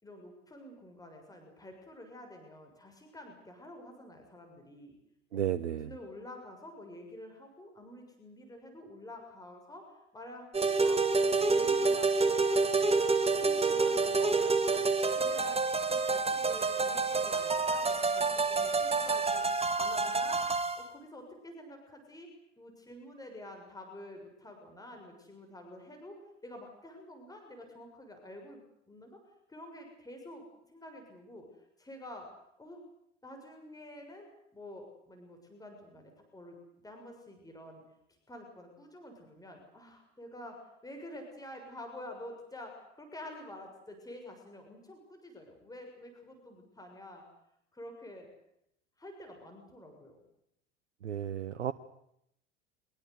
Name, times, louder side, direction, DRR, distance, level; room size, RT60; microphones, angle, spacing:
voice 1, 0.0-4.9 5.3-5.4 5.8-12.6 13.4-14.4 14.7-14.8 15.1-20.4 20.8-22.3 22.6-29.2 29.5-30.4 30.7-31.5 31.8-32.3 32.6-32.8 33.2-34.3 34.5-36.6 36.8-37.8 38.3-47.2 47.7-48.3 49.0-50.2, left 1 dB, 10° left, 3 dB, 6.7 m, -48 dB
voice 2, 5.3-5.9 51.0-51.7, right 10 dB, 75° right, 13 dB, 1.0 m, -33 dB
sound 1, 10.5-20.8, right 4 dB, 15° right, 2.4 m, -28 dB
24.5 x 22.5 x 8.2 m, 0.75 s
figure-of-eight pair, 80°, 36 cm